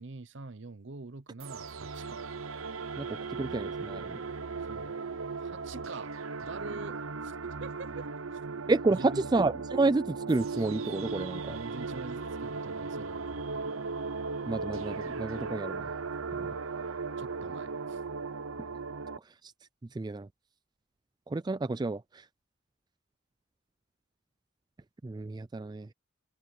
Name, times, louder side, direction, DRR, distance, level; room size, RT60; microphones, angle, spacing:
voice 1, 0.0-2.2 4.7-5.0 5.4-6.1 6.4-7.9 8.3-8.4 8.9-9.3 11.5-13.9 17.2-18.0, right 3 dB, 60° right, 0.8 m, -45 dB
sound 1, 1.4-19.2, right 4 dB, 85° right, 0.9 m, -37 dB
voice 2, 3.4-4.2 8.7-11.6 14.5-15.8 16.3-16.5 19.4-19.5 19.9-20.3 21.3-22.2 25.0-25.9, right 3 dB, 20° right, 0.3 m, -30 dB
head